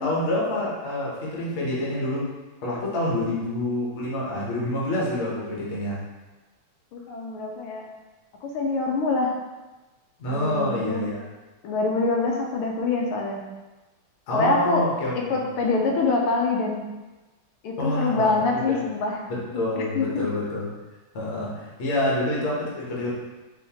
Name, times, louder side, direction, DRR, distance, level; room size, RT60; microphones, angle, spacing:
voice 1, 0.0-2.3 2.6-6.0 10.2-11.2 14.3-15.4 17.8-18.4 18.7-18.9 19.3-20.7 21.1-23.2, left 1 dB, 45° left, -5 dB, 1.0 m, -27 dB
voice 2, 6.9-7.8 8.4-9.3 10.3-11.1 11.6-13.4 14.3-14.9 15.3-16.8 17.6-19.2 19.9-20.1, left 3 dB, 85° left, 0 dB, 1.5 m, -25 dB
4.3 x 3.1 x 2.8 m, 1.1 s
omnidirectional pair, 2.4 m